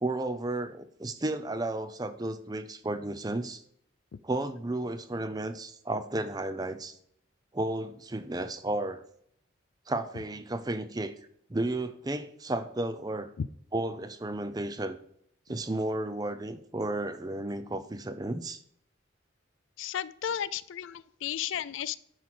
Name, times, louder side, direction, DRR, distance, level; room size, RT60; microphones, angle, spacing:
voice 1, 0.0-3.6 4.2-6.9 7.5-9.0 9.9-11.1 11.5-13.3 13.7-15.0 15.5-18.6, right 2 dB, 20° right, 11 dB, 0.5 m, -33 dB
voice 2, 19.8-22.0, left 9 dB, 70° left, 19 dB, 0.4 m, -33 dB
9.8 x 4.6 x 6.1 m, 0.68 s
head